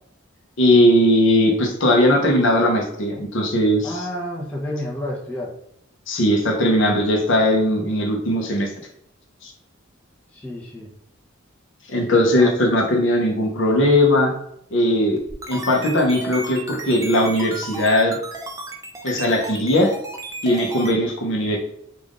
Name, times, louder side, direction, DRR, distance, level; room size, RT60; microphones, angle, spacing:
voice 1, 0.6-4.0 6.1-8.7 9.4-9.5 11.9-14.3 14.7-15.2 15.5-18.2 19.0-19.9 20.4-21.6, left 1 dB, 60° left, 1 dB, 0.8 m, -18 dB
voice 2, 3.8-5.5 10.3-10.9 12.4-12.5, left 1 dB, 5° left, -4 dB, 0.9 m, -30 dB
sound 1, 15.2-20.9, right 3 dB, 15° right, 0.5 m, -34 dB
3.6 x 2.5 x 3.7 m, 0.75 s
head